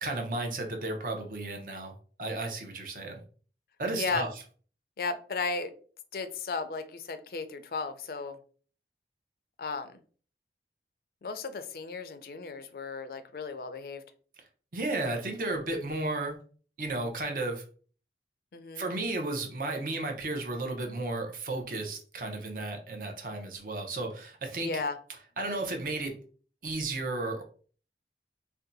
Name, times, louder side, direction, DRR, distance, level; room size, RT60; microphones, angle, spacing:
voice 1, 0.0-1.9 2.2-3.2 3.8-4.3 14.7-16.4 16.8-17.6 18.8-24.8 25.4-26.2 26.6-27.4, right 2 dB, 50° right, 3 dB, 0.7 m, -33 dB
voice 2, 4.0-4.3 5.0-5.7 6.1-8.4 9.6-10.0 11.2-14.0 18.5-18.9 24.6-25.0, left 4 dB, 55° left, 10 dB, 0.4 m, -35 dB
2.7 x 2.2 x 3.8 m, 0.42 s
head